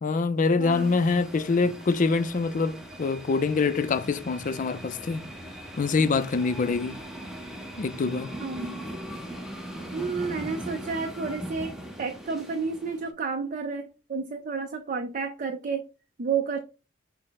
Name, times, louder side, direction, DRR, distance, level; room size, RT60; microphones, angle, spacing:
voice 1, 0.0-5.3 5.8-7.0 7.8-8.4, left 4 dB, 40° left, 0.4 m, -25 dB
voice 2, 0.6-1.0 8.4-8.8 9.9-15.9 16.2-16.6, right 5 dB, 45° right, 0.5 m, -31 dB
sound 1, 0.7-13.1, right 1 dB, ahead, 0.8 m, -40 dB
6.3 x 2.1 x 3.9 m
head